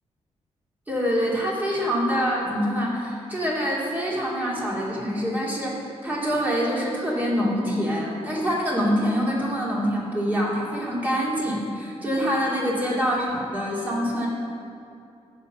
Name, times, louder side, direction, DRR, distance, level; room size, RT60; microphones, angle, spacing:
voice 1, 0.9-14.3, equal, 15° right, -5 dB, 2.5 m, -25 dB
14.5 x 5.7 x 5.6 m, 2.5 s
wide cardioid pair, 140°, 11 cm